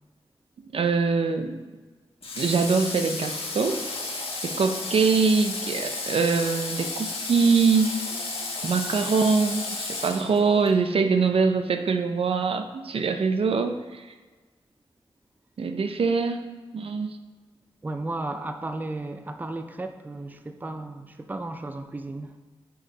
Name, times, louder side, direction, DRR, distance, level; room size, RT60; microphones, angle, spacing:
voice 1, 0.7-1.6 2.4-3.8 4.2-8.0 8.6-14.0 15.6-16.5 16.7-17.2, right 5 dB, 70° right, 7 dB, 0.6 m, -23 dB
Water / Water tap faucet, 2.2-10.7, left 3 dB, 70° left, 1.4 m, -33 dB
voice 2, 17.8-22.4, right 2 dB, 20° right, 7 dB, 0.4 m, -34 dB
6.1 x 4.8 x 5.4 m, 1.3 s
wide cardioid pair, 110°, 10 cm